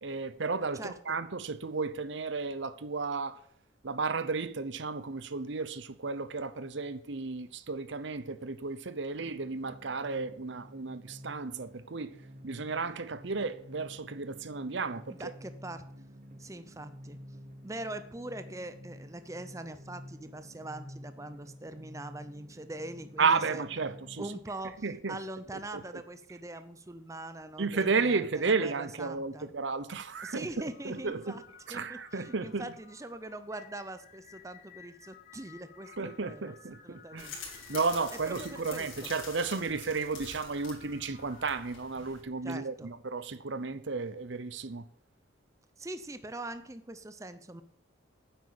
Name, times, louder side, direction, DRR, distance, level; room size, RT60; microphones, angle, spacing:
voice 1, 0.0-3.4 3.8-12.1 12.4-15.3 23.2-24.3 24.8-25.2 25.7-25.8 27.6-31.4 31.7-32.7 36.0-37.3 37.7-44.9, right 4 dB, 65° right, 0.8 m, -33 dB
voice 2, 0.7-1.2 15.2-15.9 16.4-17.2 17.6-23.6 24.2-29.5 30.2-31.4 31.7-36.6 36.8-37.7 38.3-39.1 42.4-42.9 45.8-47.6, right 1 dB, 15° right, 0.6 m, -42 dB
sound 1, 9.2-24.4, equal, 40° right, 1.3 m, -50 dB
sound 2, 30.6-41.7, left 7 dB, 40° left, 1.7 m, -56 dB
sound 3, 37.2-42.2, left 5 dB, 75° left, 4.4 m, -46 dB
9.7 x 8.0 x 8.6 m
head